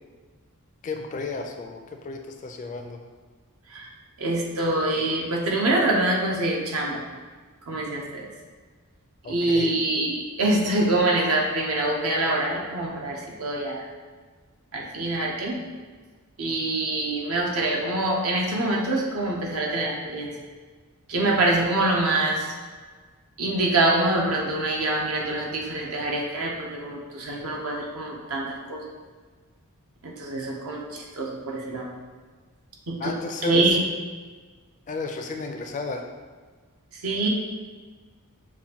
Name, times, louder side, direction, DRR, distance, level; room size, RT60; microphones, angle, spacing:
voice 1, 0.8-3.0 9.2-9.7 33.0-33.7 34.9-36.1, left 3 dB, 35° left, 4 dB, 0.4 m, -33 dB
voice 2, 4.2-7.0 7.6-8.3 9.3-13.9 14.7-15.6 16.4-20.3 21.1-22.6 23.4-29.0 30.0-31.9 32.9-33.1 33.4-33.8 36.9-37.3, right 2 dB, 70° right, -2 dB, 0.7 m, -25 dB
7.0 x 2.5 x 2.8 m, 1.5 s
head